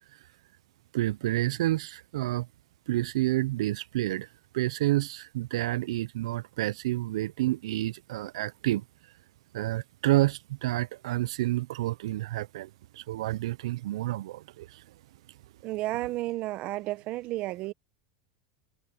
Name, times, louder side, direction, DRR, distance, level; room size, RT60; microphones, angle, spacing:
voice 1, 0.9-2.5 2.9-4.3 4.5-8.8 9.5-14.8, right 16 dB, 85° right, 0.4 m, -29 dB
voice 2, 15.6-17.7, right 17 dB, 45° right, 1.0 m, -32 dB
supercardioid pair, 130°, 3 cm